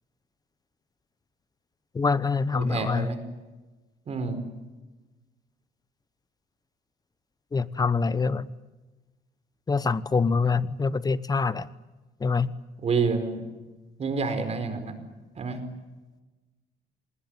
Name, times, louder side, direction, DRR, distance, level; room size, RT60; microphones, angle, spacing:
voice 1, 1.9-3.1 7.5-8.5 9.7-11.7 12.2-12.5, left 4 dB, 20° left, 17 dB, 1.0 m, -25 dB
voice 2, 2.5-3.2 4.1-4.4 12.8-13.4 14.0-14.9 15.4-15.6, right 4 dB, 40° right, 9 dB, 4.7 m, -28 dB
26.5 x 20.0 x 9.0 m, 1.2 s
cardioid pair, 110°, 17 cm